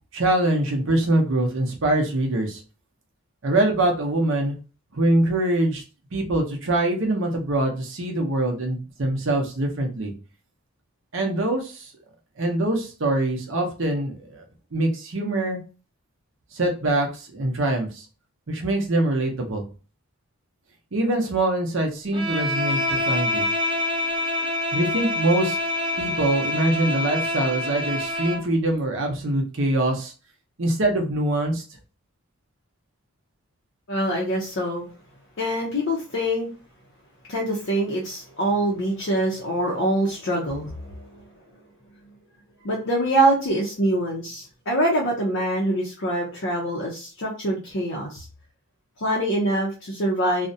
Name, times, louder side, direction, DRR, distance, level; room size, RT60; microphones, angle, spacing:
voice 1, 0.1-2.6 3.4-4.6 4.9-5.8 6.1-10.1 11.1-11.9 12.4-14.4 14.7-15.6 16.5-18.1 18.5-19.6 20.9-23.5 24.7-25.6 26.0-30.1 30.6-31.6, right 1 dB, 60° right, 1 dB, 0.6 m, -23 dB
Bowed string instrument, 22.1-28.5, left 1 dB, 20° right, 0.4 m, -26 dB
voice 2, 33.9-34.9 35.4-36.5 37.3-41.2 42.6-48.3 49.0-50.5, right 1 dB, 55° left, -4 dB, 0.5 m, -24 dB
2.4 x 2.1 x 2.6 m, 0.35 s
head